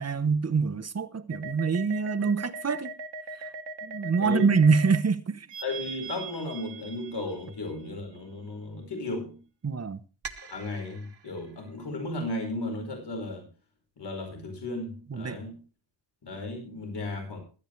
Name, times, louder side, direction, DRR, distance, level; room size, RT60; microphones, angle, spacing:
voice 1, 0.0-3.0 3.3-3.5 3.8-5.5 9.6-10.0 15.1-15.4, right 5 dB, 35° right, 0.9 m, -25 dB
sound 1, 1.3-5.0 5.5-7.7 10.2-11.3, right 4 dB, 65° right, 1.5 m, -40 dB
voice 2, 5.6-9.4 10.5-13.4 14.0-15.6 16.2-17.4, left 2 dB, 65° left, 5.0 m, -35 dB
16.5 x 12.5 x 3.2 m
wide cardioid pair, 135°, 44 cm